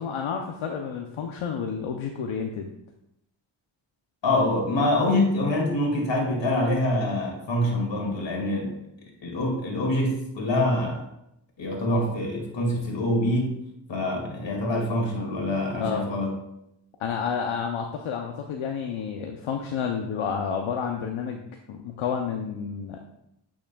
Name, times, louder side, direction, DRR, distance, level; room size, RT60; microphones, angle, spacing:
voice 1, 0.0-2.7 15.8-16.1 17.0-23.0, left 6 dB, 80° left, 3 dB, 0.7 m, -30 dB
voice 2, 4.2-8.8 9.2-11.0 11.6-13.6 13.9-16.3, left 1 dB, 65° left, 0 dB, 2.2 m, -25 dB
8.5 x 6.2 x 2.3 m, 0.81 s
cardioid pair, 60°, 48 cm